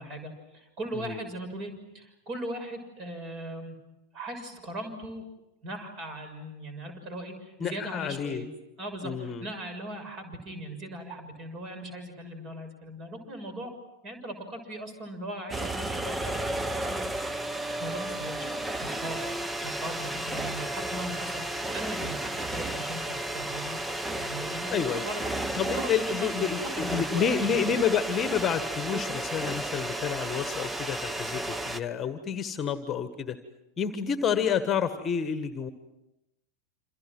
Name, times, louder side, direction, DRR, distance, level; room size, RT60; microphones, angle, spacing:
voice 1, 0.0-3.8 4.1-5.2 5.6-8.5 8.8-13.7 14.0-17.0 17.8-18.4 18.8-19.2 19.6-23.8 24.2-25.2 25.7-27.7, right 1 dB, 35° right, 7 dB, 6.7 m, -39 dB
voice 2, 7.6-8.4 9.0-9.4 24.7-25.0 25.5-33.4 33.8-35.7, left 7 dB, 25° left, 11 dB, 1.6 m, -29 dB
sound 1, 15.5-31.8, right 1 dB, 5° right, 0.9 m, -33 dB
28.0 x 28.0 x 6.2 m, 0.92 s
figure-of-eight pair, 90°, 0 cm